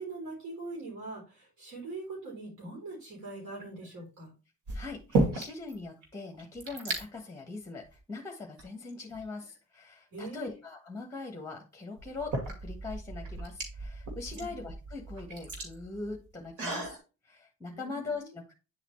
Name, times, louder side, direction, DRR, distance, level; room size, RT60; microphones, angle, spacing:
voice 1, 0.0-4.3 10.1-10.5 14.3-14.5 17.7-18.1, right 3 dB, 70° right, -2 dB, 3.7 m, -42 dB
sound 1, 3.4-3.9 4.7-5.7 6.0-6.1 6.3-7.0 7.8-8.0 8.6-9.5 11.2-11.3 12.0-17.0, right 2 dB, 85° right, 2.3 m, -34 dB
voice 2, 4.7-18.5, left 3 dB, 10° left, 2 dB, 1.3 m, -41 dB
9.3 x 4.0 x 3.1 m, 0.31 s
cardioid pair, 90°, 30 cm